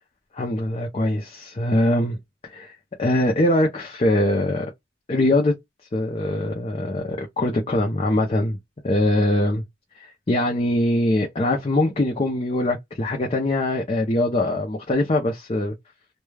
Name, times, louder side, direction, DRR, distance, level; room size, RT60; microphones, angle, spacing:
voice 1, 0.3-2.2 2.5-4.7 5.1-5.5 5.9-8.6 8.8-9.6 10.0-15.7, left 1 dB, 30° left, 0.5 m, -22 dB
2.2 x 2.2 x 3.1 m
head